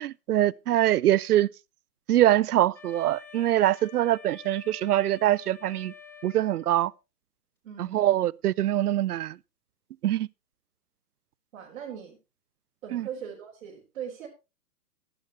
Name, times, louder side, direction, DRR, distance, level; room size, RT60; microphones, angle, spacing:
voice 1, 0.0-1.5 2.1-5.9 6.2-6.9 7.8-9.4 10.0-10.3 12.9-13.1, right 13 dB, 70° right, 0.5 m, -24 dB
Wind instrument woodwind instrument, 2.7-6.9, left 8 dB, 5° left, 0.5 m, -49 dB
voice 2, 7.6-8.0 11.5-12.2 12.8-14.3, right 8 dB, 50° right, 4.2 m, -40 dB
14.5 x 11.0 x 3.0 m
hypercardioid pair, 130°, 47 cm